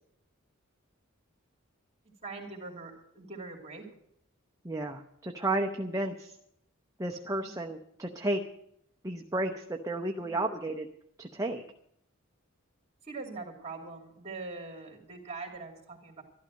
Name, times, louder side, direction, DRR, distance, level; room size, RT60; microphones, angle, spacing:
voice 1, 2.2-3.8 7.4-7.6 10.2-10.4 13.0-16.2, right 3 dB, 30° right, 1 dB, 2.6 m, -42 dB
voice 2, 4.6-6.3 7.0-8.4 9.0-10.9 11.2-11.6, right 1 dB, 15° right, 2 dB, 0.7 m, -32 dB
12.5 x 12.5 x 6.3 m, 0.74 s
head